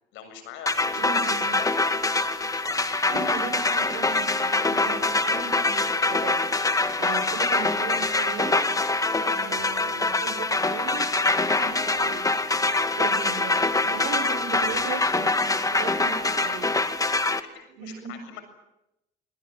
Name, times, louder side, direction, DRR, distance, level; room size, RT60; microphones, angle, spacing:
voice 1, 0.1-1.3 1.6-1.8 2.5-2.7 3.2-3.3 7.0-7.2 16.2-16.7 17.5-18.4, left 9 dB, 80° left, 9 dB, 7.4 m, -43 dB
sound 1, 0.7-17.4, left 3 dB, 15° left, 2.1 m, -24 dB
voice 2, 1.0-1.5 2.7-6.5 7.0-8.6 9.2-12.2 13.0-16.8 17.8-18.1, right 7 dB, 85° right, 7 dB, 5.8 m, -38 dB
27.0 x 20.5 x 9.0 m, 0.89 s
supercardioid pair, 85°, 19 cm